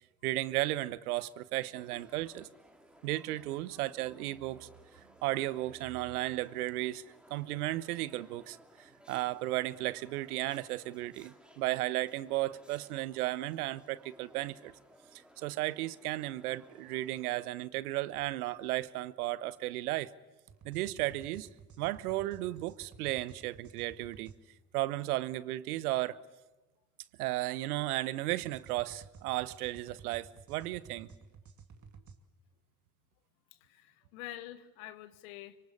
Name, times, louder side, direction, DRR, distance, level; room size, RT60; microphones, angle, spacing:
voice 1, 0.2-2.5 3.0-4.7 5.2-7.0 7.3-14.7 15.1-20.1 20.6-21.5 21.8-24.3 24.7-26.2 27.2-31.1, right 17 dB, 80° right, 1.0 m, -34 dB
sound 1, 1.7-17.5, equal, ahead, 2.8 m, -60 dB
sound 2, 20.5-24.4 28.3-32.2, right 5 dB, 40° right, 2.5 m, -54 dB
voice 2, 33.5-35.6, left 14 dB, 75° left, 1.6 m, -47 dB
25.5 x 24.0 x 8.4 m
hypercardioid pair, 60°, 44 cm